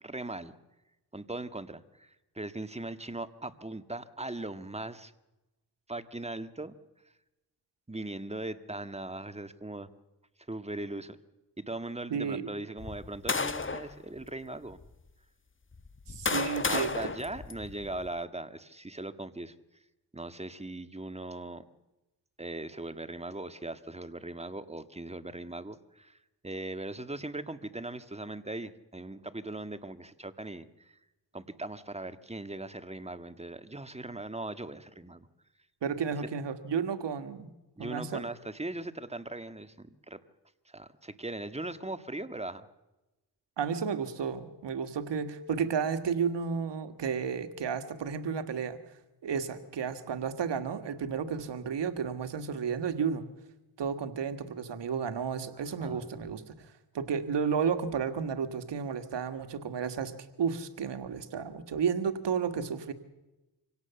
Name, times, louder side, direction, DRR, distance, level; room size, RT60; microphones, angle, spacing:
voice 1, 0.0-0.5 1.1-5.1 5.9-6.7 7.9-9.9 10.5-11.2 11.6-14.8 16.7-19.5 20.1-21.6 22.4-26.2 26.4-30.9 31.3-35.3 37.8-40.2 40.7-42.7 55.8-56.1, right 2 dB, 15° right, 11 dB, 1.7 m, -39 dB
voice 2, 12.1-12.5 16.1-16.9 35.8-37.5 37.8-38.2 43.6-48.8 49.2-53.2 53.8-56.5 56.9-60.1 60.4-62.9, right 6 dB, 80° right, 10 dB, 1.8 m, -32 dB
sound 1, 12.8-13.9 14.7-14.8 15.7-18.1, left 4 dB, 30° left, 1.5 m, -33 dB
26.0 x 17.5 x 7.0 m, 1.0 s
cardioid pair, 55°, 42 cm